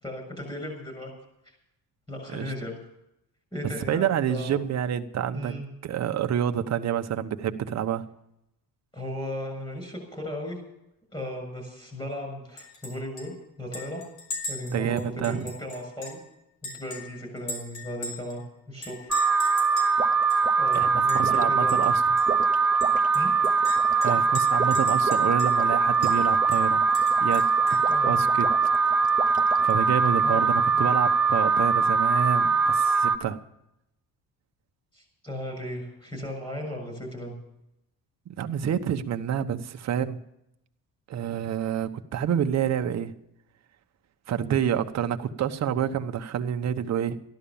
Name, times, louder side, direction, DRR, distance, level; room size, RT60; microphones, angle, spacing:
voice 1, 0.0-1.1 1.5-1.6 2.1-2.8 3.5-4.6 5.3-5.7 8.9-10.6 11.1-14.0 14.5-16.2 16.8-19.1 20.6-21.9 23.1-23.3 27.9-28.2 30.2-30.4 34.9-37.3 44.4-44.6, left 1 dB, 15° left, 3 dB, 6.9 m, -36 dB
voice 2, 3.9-5.5 5.8-8.1 14.7-15.5 20.7-22.0 24.0-26.8 27.2-28.5 29.6-33.4 38.3-40.2 41.1-43.1 44.3-47.2, right 9 dB, 50° right, 7 dB, 1.1 m, -28 dB
Chink clink, 12.6-12.9 13.2-13.3 13.7-16.2 16.6-18.4 18.8-19.9 20.3-20.4 20.7-21.4 21.7-21.9 22.2-22.3 22.8-25.7 26.0-26.2 26.5-27.9, left 2 dB, 65° left, 5.6 m, -39 dB
Alarm, 19.1-33.2, right 5 dB, 5° right, 1.1 m, -22 dB
sound 1, 20.0-29.9, right 7 dB, 25° right, 0.7 m, -36 dB
14.5 x 11.5 x 7.1 m, 0.83 s
cardioid pair, 140°, 35 cm